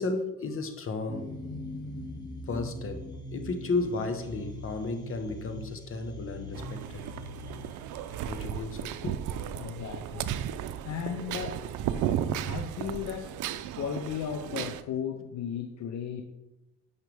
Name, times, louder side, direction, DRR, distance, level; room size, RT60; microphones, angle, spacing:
voice 1, 0.0-1.3 2.5-7.0 8.0-9.2, left 3 dB, 45° left, 7 dB, 1.2 m, -33 dB
sound 1, 1.1-9.7, left 1 dB, 15° left, 2.0 m, -42 dB
sound 2, 6.5-14.8, right 10 dB, 85° right, 0.5 m, -34 dB
voice 2, 9.5-10.3 10.8-11.6 11.9-12.1 12.4-13.3 13.7-16.2, left 8 dB, 65° left, 6 dB, 0.7 m, -35 dB
9.5 x 5.6 x 3.4 m, 0.97 s
cardioid pair, 90°, 30 cm